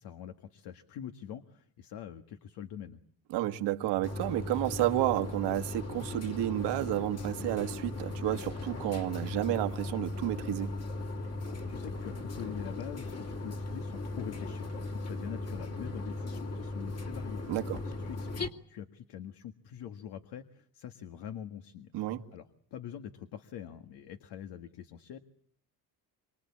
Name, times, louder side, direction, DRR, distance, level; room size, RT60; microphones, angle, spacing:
voice 1, 0.0-3.0 11.5-17.4 17.7-21.9 22.3-25.2, left 9 dB, 80° left, 1.8 m, -44 dB
voice 2, 3.3-10.7 17.5-17.8 21.9-22.2, right 14 dB, 90° right, 1.8 m, -31 dB
sound 1, 4.0-18.5, left 2 dB, 40° left, 2.8 m, -38 dB
26.5 x 24.5 x 8.6 m
cardioid pair, 90°, 40 cm